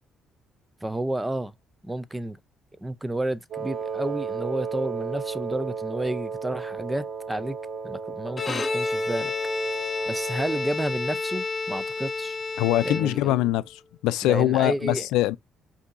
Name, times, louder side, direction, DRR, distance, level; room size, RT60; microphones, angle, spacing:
voice 1, 0.8-1.5 1.8-2.4 2.8-7.6 7.8-9.3 10.1-12.4 12.8-13.5 14.2-15.1, right 1 dB, 10° right, 0.5 m, -31 dB
Wind instrument woodwind instrument, 3.5-10.8, right 5 dB, 55° right, 1.4 m, -34 dB
Bowed string instrument, 8.3-13.5, left 3 dB, 30° left, 0.8 m, -30 dB
voice 2, 12.6-15.4, left 15 dB, 90° left, 0.4 m, -23 dB
5.3 x 2.8 x 2.6 m
cardioid pair, 100°, 0 cm